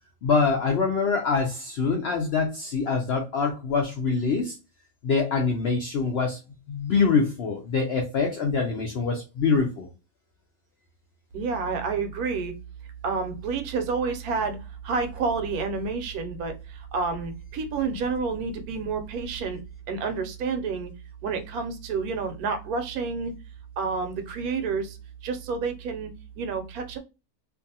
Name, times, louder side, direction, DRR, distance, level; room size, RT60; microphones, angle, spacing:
voice 1, 0.2-4.6 5.0-6.4 6.7-9.9, left 4 dB, 75° left, 2 dB, 0.5 m, -24 dB
voice 2, 11.3-12.6 13.0-14.6 14.8-19.6 19.9-20.9 21.2-23.3 23.8-25.0 25.2-27.0, right 4 dB, 75° right, 7 dB, 1.0 m, -29 dB
2.6 x 2.3 x 2.7 m, 0.29 s
omnidirectional pair, 1.6 m